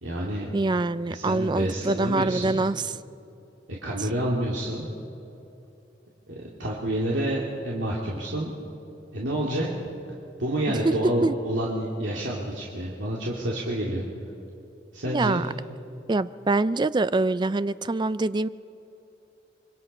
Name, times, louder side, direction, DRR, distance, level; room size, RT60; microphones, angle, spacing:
voice 1, 0.0-0.5 1.1-2.6 3.8-4.9 6.3-8.6 9.1-9.7 10.4-14.0 14.9-15.4, right 1 dB, 75° right, -4 dB, 2.5 m, -28 dB
voice 2, 0.5-3.0 10.8-10.9 11.2-11.4 15.1-15.5 16.1-18.5, right 2 dB, 25° right, 16 dB, 0.4 m, -24 dB
26.0 x 24.0 x 5.5 m, 2.9 s
head